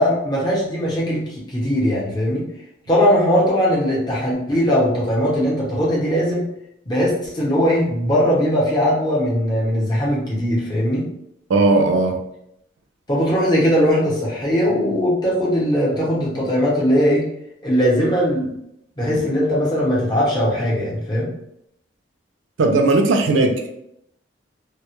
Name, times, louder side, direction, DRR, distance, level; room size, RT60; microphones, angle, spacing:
voice 1, 0.0-2.4 2.9-6.5 6.9-11.1 13.1-17.3 17.6-18.5 19.0-21.3, equal, 20° left, -5 dB, 0.6 m, -19 dB
voice 2, 11.5-12.2 22.6-23.7, right 2 dB, 80° right, 3 dB, 0.4 m, -17 dB
2.1 x 2.0 x 2.8 m, 0.76 s
head